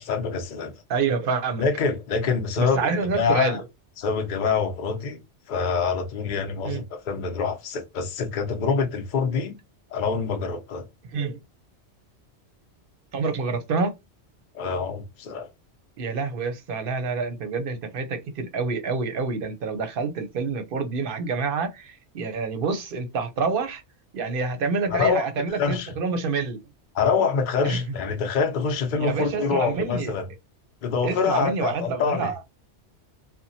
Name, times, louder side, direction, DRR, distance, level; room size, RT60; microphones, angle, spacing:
voice 1, 0.0-0.7 1.6-3.6 4.0-5.2 5.5-9.6 9.9-10.9 14.5-15.5 24.9-25.9 26.9-30.3 30.8-32.3, left 5 dB, 50° left, 0.7 m, -25 dB
voice 2, 0.9-1.7 2.6-3.6 6.6-6.8 11.1-11.4 13.1-13.9 16.0-23.8 24.1-26.6 27.6-27.8 29.0-30.1 31.0-32.4, right 4 dB, 60° right, 0.7 m, -27 dB
2.9 x 2.1 x 2.6 m
omnidirectional pair, 1.2 m